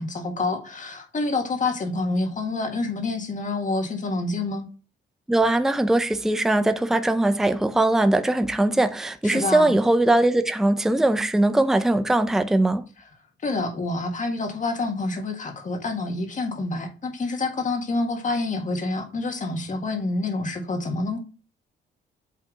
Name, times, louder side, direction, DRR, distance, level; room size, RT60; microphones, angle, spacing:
voice 1, 0.0-4.6 9.2-9.8 13.4-21.2, left 3 dB, 40° left, 1.7 m, -27 dB
voice 2, 5.3-12.8, right 1 dB, ahead, 0.5 m, -21 dB
8.4 x 3.4 x 3.7 m
cardioid pair, 90°, 20 cm